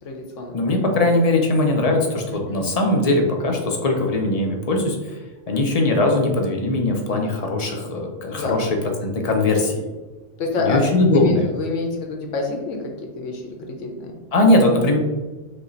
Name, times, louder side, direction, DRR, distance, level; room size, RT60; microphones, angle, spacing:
voice 1, 0.0-0.8 2.3-2.7 8.3-8.6 10.4-14.2, left 3 dB, 80° left, 2 dB, 1.1 m, -28 dB
voice 2, 0.5-5.0 5.5-8.8 9.0-9.9 10.6-11.4 14.3-15.0, left 2 dB, 45° left, 2 dB, 0.5 m, -20 dB
5.2 x 2.3 x 3.9 m, 1.2 s
omnidirectional pair, 1.3 m